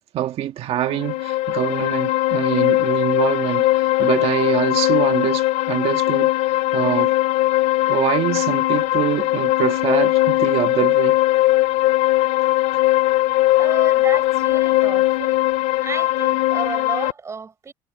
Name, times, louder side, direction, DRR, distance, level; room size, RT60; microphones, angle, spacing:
voice 1, 0.1-6.3 6.7-7.1 7.9-11.2, right 12 dB, 55° right, 1.7 m, -24 dB
sound 1, 0.8-17.1, left 17 dB, 75° left, 3.1 m, -19 dB
voice 2, 13.5-15.4 15.8-17.7, right 5 dB, 25° right, 7.1 m, -32 dB
cardioid pair, 135°, 12 cm